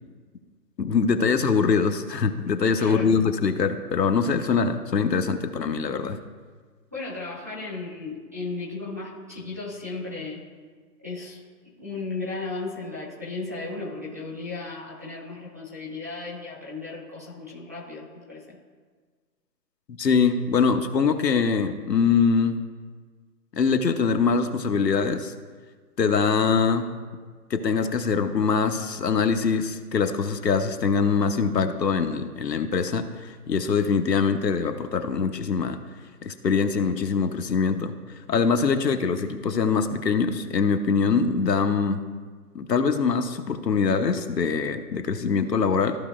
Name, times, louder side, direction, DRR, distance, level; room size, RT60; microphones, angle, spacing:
voice 1, 0.8-6.2 19.9-22.5 23.6-25.3 26.0-26.9 27.5-35.8 36.2-37.9 38.3-42.0 42.5-46.0, left 5 dB, 85° left, 7 dB, 1.0 m, -23 dB
voice 2, 2.8-3.2 6.9-10.4 11.0-11.4 11.8-18.6, left 3 dB, 10° right, -9 dB, 0.7 m, -35 dB
14.5 x 5.0 x 2.5 m, 1.5 s
hypercardioid pair, 165°, 48 cm